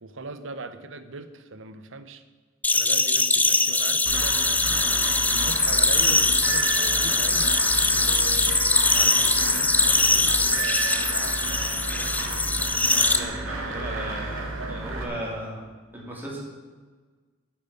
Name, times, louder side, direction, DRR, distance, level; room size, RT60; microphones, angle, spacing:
voice 1, 0.0-2.2 2.7-12.1 12.4-13.2 13.5-14.9, right 3 dB, 65° right, 11 dB, 0.9 m, -40 dB
sound 1, 2.6-13.2, left 3 dB, 10° left, 0.5 m, -22 dB
sound 2, 4.1-15.0, right 3 dB, 90° right, 2.1 m, -32 dB
voice 2, 12.9-15.6 15.9-16.4, right 1 dB, 10° right, -4 dB, 3.0 m, -36 dB
9.6 x 7.3 x 8.3 m, 1.4 s
head